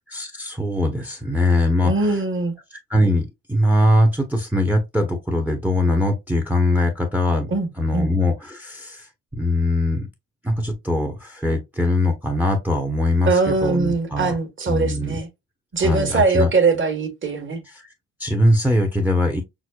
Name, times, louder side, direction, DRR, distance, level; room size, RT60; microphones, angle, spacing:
voice 1, 0.1-2.1 2.9-7.5 7.8-9.1 9.3-10.1 10.4-14.3 14.7-15.2 15.8-16.5 18.2-19.4, left 1 dB, 5° right, 0.8 m, -21 dB
voice 2, 1.8-2.5 7.5-8.1 13.2-15.3 15.7-17.6, right 3 dB, 35° right, 1.3 m, -21 dB
6.0 x 2.1 x 2.2 m
cardioid pair, 85°, 35 cm